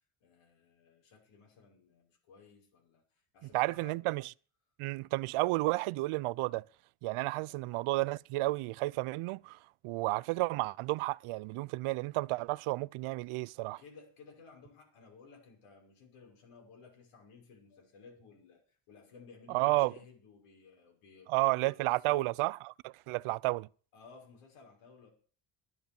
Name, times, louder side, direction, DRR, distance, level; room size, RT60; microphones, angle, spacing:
voice 1, 0.2-4.0 7.4-7.7 13.8-22.3 23.9-25.1, left 4 dB, 85° left, 5.8 m, -57 dB
voice 2, 3.5-4.3 4.8-6.6 7.0-9.6 9.8-13.8 19.5-19.9 21.3-23.7, right 20 dB, 80° right, 0.6 m, -32 dB
12.0 x 11.0 x 7.0 m
cardioid pair, 140°, 50 cm